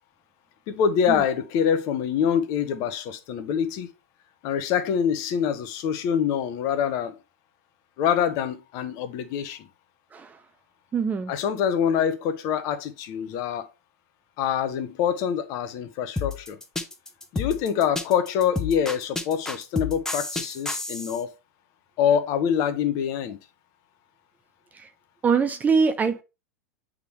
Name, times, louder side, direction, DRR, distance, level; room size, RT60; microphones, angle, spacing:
voice 1, 0.7-3.9 4.4-7.1 8.0-9.7 11.3-13.7 14.4-16.6 17.3-21.3 22.0-23.4, left 8 dB, 45° left, 1.0 m, -25 dB
voice 2, 10.9-11.3 24.8-24.9 25.2-26.2, right 5 dB, 20° right, 0.5 m, -23 dB
sound 1, 16.2-21.2, left 3 dB, 5° left, 0.9 m, -30 dB
8.1 x 3.7 x 3.1 m
figure-of-eight pair, 95°, 9 cm